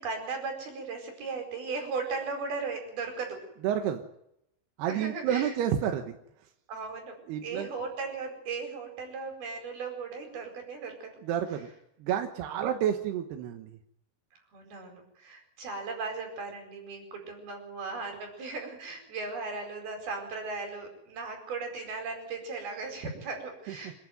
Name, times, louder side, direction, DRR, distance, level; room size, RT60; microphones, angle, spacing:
voice 1, 0.0-3.4 4.9-5.5 6.7-7.2 7.4-11.1 14.5-23.9, right 4 dB, 50° right, 4 dB, 6.5 m, -37 dB
voice 2, 3.6-4.0 4.8-6.5 7.3-7.7 11.2-11.7 12.0-13.8 23.7-23.9, right 9 dB, 70° right, 6 dB, 2.8 m, -30 dB
27.5 x 11.0 x 9.4 m, 0.79 s
omnidirectional pair, 5.7 m